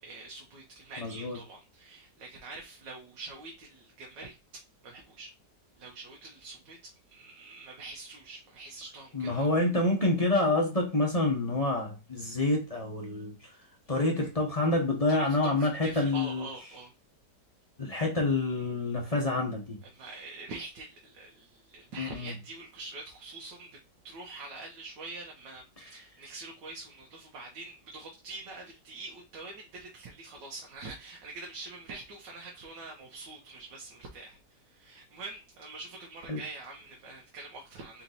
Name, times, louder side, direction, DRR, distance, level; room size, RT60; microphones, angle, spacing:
voice 1, 0.0-4.4 4.8-5.3 5.8-9.5 15.1-16.9 19.9-23.7 24.0-38.0, right 3 dB, 80° right, 1.6 m, -45 dB
voice 2, 1.0-1.4 9.1-13.3 13.9-16.4 17.8-19.8 22.0-22.4 36.3-36.4, left 2 dB, 25° left, 0.9 m, -27 dB
4.4 x 2.9 x 4.0 m
omnidirectional pair, 1.9 m